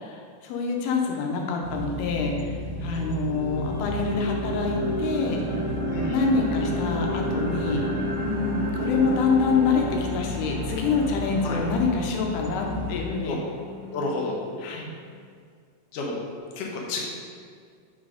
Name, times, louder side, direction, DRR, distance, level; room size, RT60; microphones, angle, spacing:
voice 1, 0.0-5.4 6.1-7.8 8.2-13.4 14.6-14.9, left 4 dB, 85° left, 1 dB, 2.8 m, -26 dB
sound 1, 1.6-13.1, left 1 dB, 80° right, 2.2 m, -34 dB
sound 2, 1.9-2.0 2.5-14.5, equal, 55° left, 0.8 m, -32 dB
voice 2, 5.9-6.3 11.4-11.6 13.3-13.4 13.9-14.4 15.9-16.1 16.6-17.0, left 3 dB, 70° left, -2 dB, 2.1 m, -30 dB
6.3 x 4.0 x 5.0 m, 2.1 s
omnidirectional pair, 4.4 m